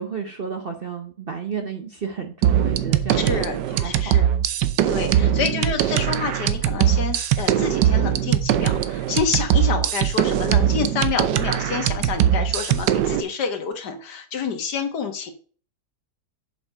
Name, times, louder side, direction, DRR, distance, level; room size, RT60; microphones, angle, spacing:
voice 1, 0.0-4.2 5.0-5.3, right 6 dB, 45° right, 4 dB, 0.8 m, -32 dB
sound 1, 2.4-13.2, right 10 dB, 85° right, 1.3 m, -21 dB
voice 2, 3.2-4.3 4.9-15.3, left 6 dB, 70° left, 7 dB, 1.8 m, -28 dB
7.3 x 5.9 x 5.6 m, 0.42 s
omnidirectional pair, 1.8 m